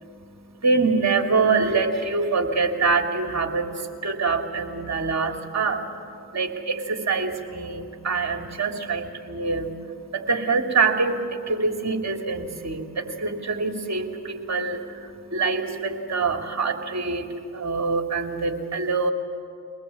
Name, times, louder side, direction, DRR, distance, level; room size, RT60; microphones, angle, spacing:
voice 1, 0.0-19.1, right 4 dB, 40° right, 4 dB, 3.2 m, -25 dB
24.0 x 19.0 x 8.6 m, 2.5 s
supercardioid pair, 45°, 43 cm